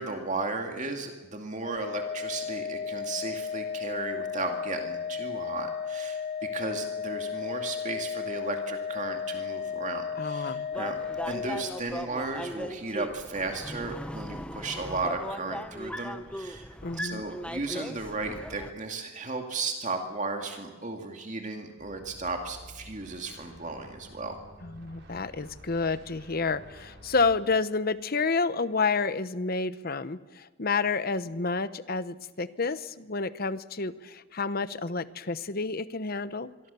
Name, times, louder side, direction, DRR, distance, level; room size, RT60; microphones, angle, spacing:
voice 1, 0.0-11.0 11.3-16.7 16.9-24.4, right 3 dB, 35° right, 4 dB, 2.3 m, -35 dB
Organ, 1.6-12.3, left 7 dB, 30° left, 1.3 m, -34 dB
voice 2, 10.2-10.7 16.8-17.2 24.6-36.5, left 4 dB, 45° left, 14 dB, 1.0 m, -29 dB
sound 1, 10.7-18.7, equal, 5° left, 0.7 m, -38 dB
sound 2, 21.8-27.4, equal, 55° right, 5.4 m, -50 dB
26.0 x 23.0 x 7.0 m, 1.3 s
head